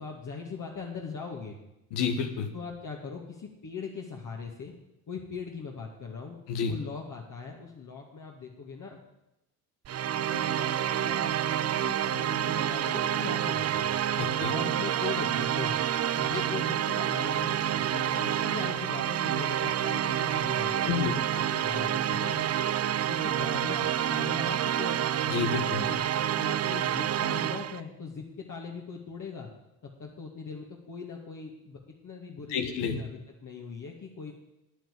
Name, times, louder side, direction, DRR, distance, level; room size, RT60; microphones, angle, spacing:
voice 1, 0.0-1.6 2.5-4.8 5.1-6.4 6.7-9.0 10.1-13.9 14.5-15.8 16.1-22.5 23.1-25.1 25.8-26.0 26.3-29.5 29.8-34.3, left 5 dB, 45° left, -2 dB, 2.4 m, -40 dB
voice 2, 1.9-2.5 6.5-6.8 14.2-14.5 20.9-21.1 25.3-25.8 32.5-33.0, left 7 dB, 70° left, 6 dB, 1.9 m, -29 dB
sound 1, 9.8-27.8, right 10 dB, 35° right, 0.6 m, -28 dB
10.0 x 9.5 x 8.7 m, 0.91 s
hypercardioid pair, 60°, 43 cm